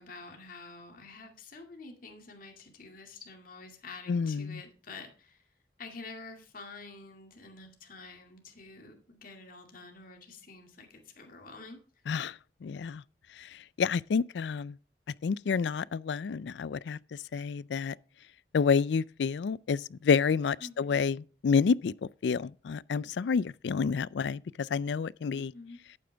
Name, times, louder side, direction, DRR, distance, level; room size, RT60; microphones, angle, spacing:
voice 1, 0.0-5.4 5.8-11.8 20.6-21.0 25.3-25.8, left 3 dB, 55° left, 2.3 m, -48 dB
voice 2, 4.1-4.6 12.1-12.3 12.6-13.0 13.4-13.5 13.8-14.7 15.2-17.0 17.3-18.0 18.5-21.9 22.2-25.5, left 5 dB, 75° left, 0.4 m, -29 dB
11.5 x 8.9 x 3.4 m
head